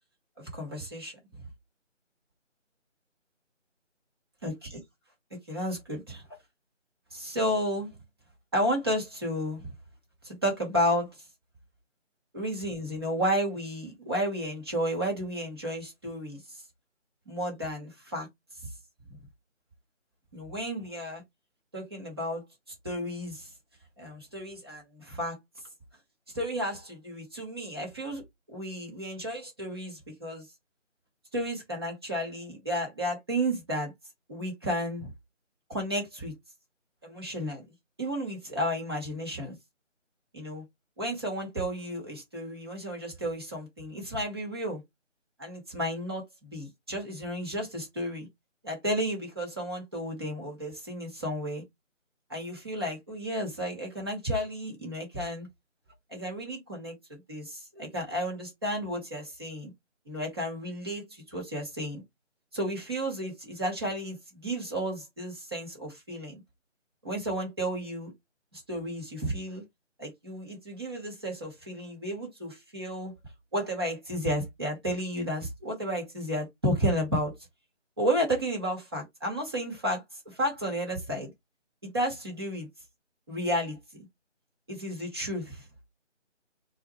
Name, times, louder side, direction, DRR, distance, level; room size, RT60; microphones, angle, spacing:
voice 1, 0.5-1.2 4.4-4.8 5.5-6.2 7.1-7.9 8.5-9.7 10.2-11.1 12.3-16.4 17.3-18.3 20.3-21.2 21.7-22.4 22.8-23.5 24.0-25.4 26.3-28.2 28.5-30.4 31.3-33.9 34.3-35.1 35.7-36.3 37.0-37.7 38.0-39.6 40.3-40.6 41.0-44.8 45.4-48.3 48.6-51.6 52.3-55.5 56.1-59.7 60.1-62.0 62.5-66.4 67.0-68.1 68.5-69.6 70.0-73.1 73.5-77.3 78.0-81.3 81.8-82.7 83.3-83.8 84.7-85.6, equal, 20° right, 1.2 m, -32 dB
4.1 x 2.4 x 3.0 m
figure-of-eight pair, 170°, 37 cm